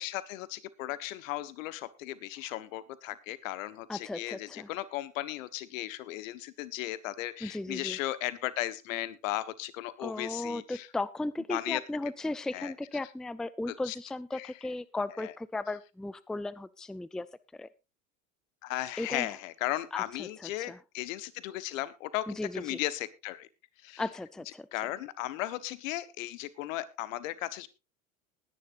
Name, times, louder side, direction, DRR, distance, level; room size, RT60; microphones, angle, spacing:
voice 1, 0.0-10.9 11.5-11.8 12.5-12.7 13.9-14.0 14.3-14.5 15.2-15.3 18.6-23.5 23.8-24.0 24.7-27.7, left 15 dB, 70° left, 16 dB, 1.3 m, -36 dB
voice 2, 3.9-4.7 7.4-8.0 10.0-17.3 17.5-17.7 19.0-19.4 19.9-20.8 22.3-22.8 24.0-24.7, left 2 dB, ahead, 18 dB, 0.5 m, -36 dB
20.5 x 10.0 x 2.6 m, 0.28 s
hypercardioid pair, 80°, 40 cm